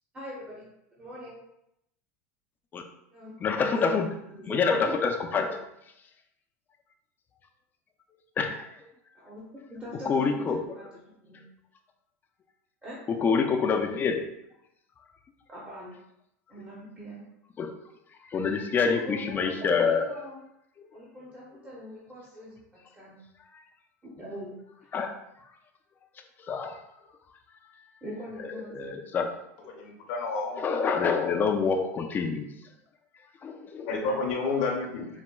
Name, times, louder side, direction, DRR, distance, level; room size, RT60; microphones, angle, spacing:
voice 1, 0.1-0.7 1.0-1.4 3.1-4.0 4.3-4.9 9.1-11.4 12.8-13.0 15.5-16.0 16.5-17.2 18.9-20.4 20.9-23.2 24.0-24.5 28.0-28.9 33.9-34.2, equal, 15° right, -6 dB, 0.8 m, -42 dB
voice 2, 3.4-4.1 4.5-5.6 8.4-8.7 10.0-10.7 13.1-14.3 17.6-17.8 18.3-20.1 20.8-20.9 24.9-25.2 26.4-26.8 28.4-29.3 30.6-32.5 33.4-33.9, left 5 dB, 25° left, 4 dB, 0.4 m, -27 dB
voice 3, 29.7-30.6 33.9-35.1, left 3 dB, 55° left, -1 dB, 0.7 m, -30 dB
4.2 x 2.1 x 2.2 m, 0.82 s
supercardioid pair, 125°, 8 cm